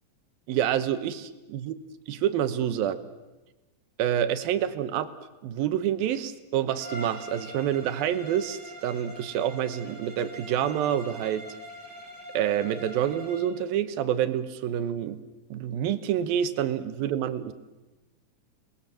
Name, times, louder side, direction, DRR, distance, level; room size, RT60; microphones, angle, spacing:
voice 1, 0.5-1.7 2.1-3.0 4.0-5.1 5.4-11.5 12.3-15.2 15.5-17.5, right 10 dB, 90° right, 11 dB, 2.9 m, -27 dB
Bowed string instrument, 6.7-13.6, equal, ahead, 6.2 m, -43 dB
29.0 x 20.0 x 7.6 m, 1.1 s
omnidirectional pair, 4.1 m